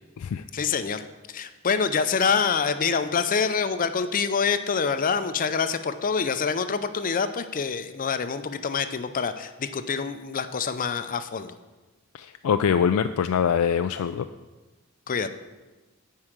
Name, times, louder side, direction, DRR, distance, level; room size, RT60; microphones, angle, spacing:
voice 1, 0.5-1.0 1.3-11.5 15.1-15.3, left 5 dB, 40° left, 11 dB, 0.5 m, -26 dB
voice 2, 12.1-14.3, left 7 dB, 90° left, 8 dB, 0.4 m, -23 dB
9.8 x 4.8 x 7.3 m, 1.2 s
head